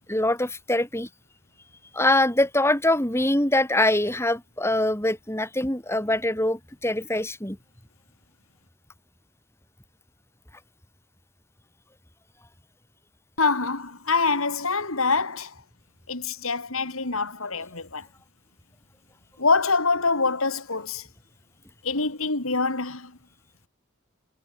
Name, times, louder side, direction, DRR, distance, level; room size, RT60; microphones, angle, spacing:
voice 1, 0.1-1.1 1.9-7.6, left 1 dB, 10° left, 3.3 m, -23 dB
voice 2, 13.4-15.5 16.1-18.1 19.4-21.1 21.8-23.1, left 4 dB, 85° left, 3.5 m, -25 dB
head